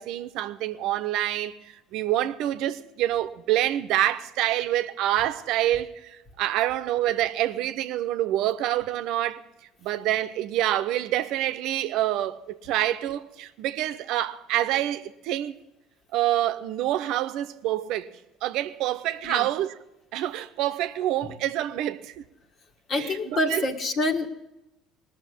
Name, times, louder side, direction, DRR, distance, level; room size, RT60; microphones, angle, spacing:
voice 1, 0.0-1.6 1.9-9.4 9.8-15.6 16.1-18.1 18.4-19.7 20.1-22.2 23.0-23.6, right 13 dB, 70° right, 0.8 m, -27 dB
voice 2, 22.9-24.3, left 2 dB, 50° left, 1.9 m, -27 dB
19.0 x 6.7 x 9.9 m
hypercardioid pair, 70°, 0 cm